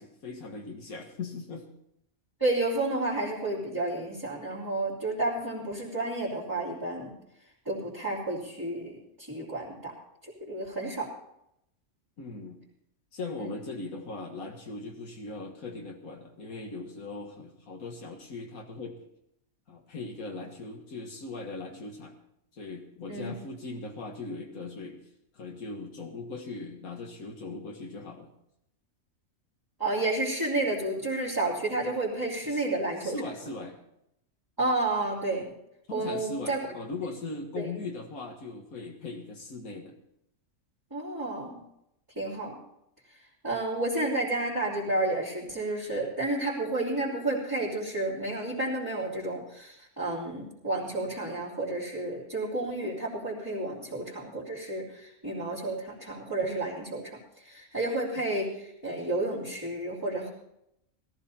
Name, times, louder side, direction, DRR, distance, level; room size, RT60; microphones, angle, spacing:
voice 1, 0.0-1.7 12.2-12.6 13.1-19.0 19.7-22.2 22.5-25.0 25.3-28.3 32.4-32.7 33.0-33.8 35.9-40.0, left 3 dB, 80° left, 1 dB, 2.0 m, -39 dB
voice 2, 2.4-7.1 7.6-9.9 10.4-11.1 13.4-13.5 23.1-23.4 29.8-33.2 34.6-35.4 35.9-36.7 37.5-37.7 40.9-41.6 42.1-42.6 43.4-57.2 57.4-60.3, right 2 dB, 15° right, -9 dB, 3.3 m, -31 dB
18.0 x 14.5 x 4.3 m, 0.78 s
omnidirectional pair, 1.5 m